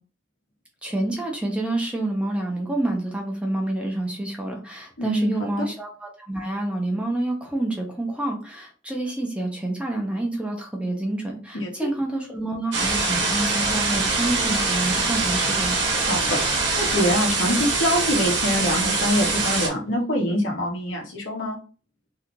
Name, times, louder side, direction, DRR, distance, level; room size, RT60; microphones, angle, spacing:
voice 1, 0.8-15.8, right 1 dB, 5° right, 0 dB, 0.6 m, -28 dB
voice 2, 5.0-5.3 11.5-11.9 16.1-21.6, left 1 dB, 85° left, -1 dB, 1.1 m, -24 dB
sound 1, 12.7-19.7, right 3 dB, 65° right, 0.9 m, -23 dB
2.8 x 2.4 x 3.6 m, 0.38 s
head